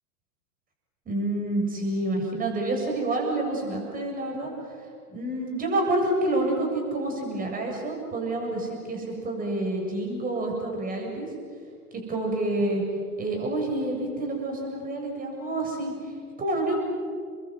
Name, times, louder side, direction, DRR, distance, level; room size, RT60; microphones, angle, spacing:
voice 1, 1.1-4.5 5.1-11.3 12.1-12.8 13.2-15.9 16.4-16.7, right 2 dB, 20° right, 1 dB, 7.6 m, -28 dB
29.5 x 22.5 x 7.9 m, 2.2 s
hypercardioid pair, 120°, 47 cm